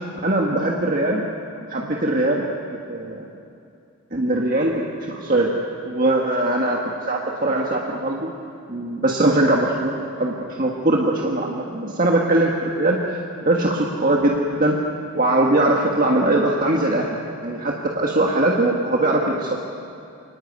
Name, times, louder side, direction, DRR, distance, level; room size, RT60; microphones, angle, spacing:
voice 1, 0.2-1.3 1.6-2.5 2.9-3.3 4.1-5.5 5.8-8.3 8.7-13.0 13.4-14.7 15.1-17.2 17.4-19.6, right 1 dB, 40° right, -1 dB, 1.7 m, -21 dB
24.5 x 18.5 x 9.5 m, 2.6 s
head